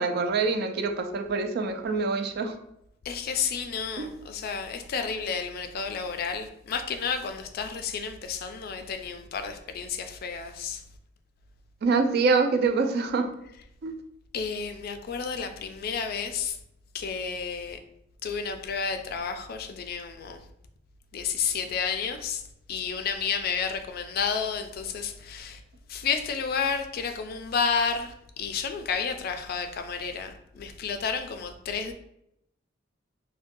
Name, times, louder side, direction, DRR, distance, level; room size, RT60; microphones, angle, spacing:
voice 1, 0.0-2.6 4.0-4.1 11.8-13.3 13.8-13.9, right 4 dB, 55° right, 6 dB, 0.4 m, -25 dB
voice 2, 3.0-10.8 14.3-16.6 16.9-17.8 18.2-20.4 21.1-22.4 22.7-25.6 25.9-31.9, left 6 dB, 55° left, 7 dB, 0.3 m, -31 dB
3.8 x 2.1 x 2.6 m, 0.77 s
head